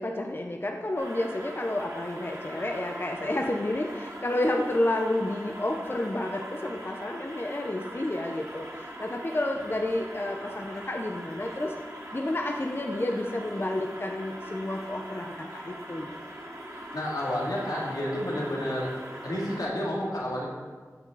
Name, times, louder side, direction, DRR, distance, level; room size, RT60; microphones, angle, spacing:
voice 1, 0.0-11.7 12.1-16.1, left 1 dB, 35° left, 2 dB, 0.7 m, -30 dB
sound 1, 1.0-19.7, equal, 60° right, 3.0 m, -42 dB
voice 2, 16.9-19.0 19.2-20.5, left 1 dB, 85° left, -5 dB, 2.6 m, -30 dB
15.0 x 5.8 x 4.0 m, 1.5 s
wide cardioid pair, 50°, 6 cm